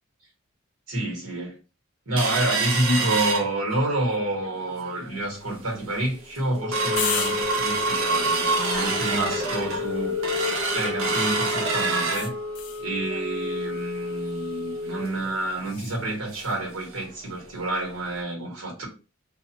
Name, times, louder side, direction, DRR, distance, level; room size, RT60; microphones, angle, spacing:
voice 1, 0.9-1.5 2.0-10.2 10.7-12.3 12.8-18.9, right 1 dB, 80° right, 1.5 m, -28 dB
sound 1, 2.2-4.0 4.4-4.5 4.9-5.2 5.7-5.8 6.1-16.7 17.0-17.1 17.5-17.6 18.2-18.3, right 1 dB, 65° right, 0.6 m, -27 dB
sound 2, 7.0-11.4 12.1-12.9 15.6-16.0, left 8 dB, 90° left, 0.5 m, -36 dB
2.6 x 2.3 x 2.9 m
head